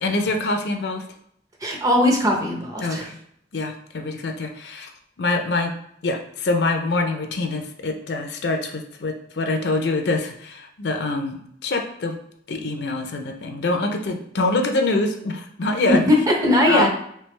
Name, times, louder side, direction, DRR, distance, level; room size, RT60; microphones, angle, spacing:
voice 1, 0.0-1.1 2.8-3.2 3.5-4.9 5.2-5.7 6.0-12.2 12.5-16.0 16.7-16.9, left 2 dB, 65° left, 5 dB, 0.6 m, -25 dB
voice 2, 1.6-3.1 15.9-16.9, left 1 dB, 20° right, 1 dB, 0.6 m, -19 dB
3.3 x 3.2 x 3.2 m, 0.69 s
head